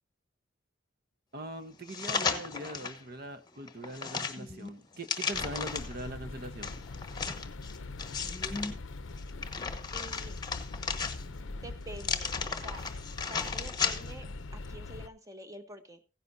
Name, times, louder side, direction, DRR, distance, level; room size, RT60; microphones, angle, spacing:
voice 1, 1.3-6.8, right 1 dB, 50° right, 1.1 m, -41 dB
sound 1, 1.9-3.0 3.5-6.0 6.6-8.7 9.2-11.5 12.0-14.3 14.6-14.7, left 5 dB, 20° left, 1.1 m, -35 dB
sound 2, 5.3-15.1, left 3 dB, 75° left, 0.6 m, -42 dB
voice 2, 9.9-10.4 11.6-12.8 13.3-14.3 14.5-16.0, right 1 dB, 15° right, 1.2 m, -47 dB
16.5 x 10.0 x 2.7 m
head